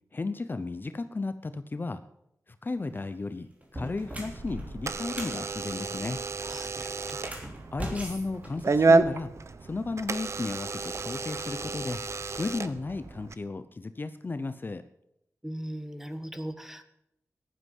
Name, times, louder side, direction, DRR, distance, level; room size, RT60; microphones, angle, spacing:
voice 1, 0.1-2.0 2.6-6.2 7.7-9.3 9.6-12.0 12.4-14.8, left 3 dB, 35° left, 11 dB, 0.7 m, -34 dB
sound 1, 2.8-3.1 3.6-5.4 7.1-9.2, equal, 25° right, 3.4 m, -39 dB
Door / Alarm, 4.1-13.3, right 3 dB, 55° right, 1.0 m, -30 dB
voice 2, 6.4-7.5 15.4-16.9, equal, 5° right, 9 dB, 1.4 m, -39 dB
15.0 x 11.5 x 5.5 m, 0.80 s
wide cardioid pair, 120°, 6 cm